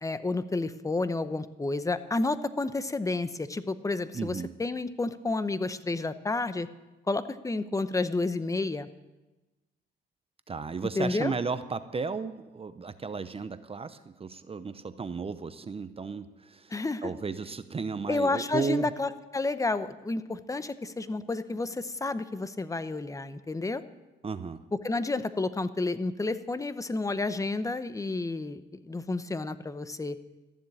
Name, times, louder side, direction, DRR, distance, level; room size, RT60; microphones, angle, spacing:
voice 1, 0.0-6.7 7.1-8.9 11.0-11.3 16.7-17.1 18.1-23.8 24.8-30.2, left 3 dB, 15° left, 12 dB, 0.8 m, -30 dB
voice 2, 4.1-4.5 10.5-18.9 24.2-24.6, right 5 dB, 30° right, 12 dB, 0.7 m, -34 dB
14.0 x 7.3 x 9.9 m, 1.1 s
cardioid pair, 90°, 20 cm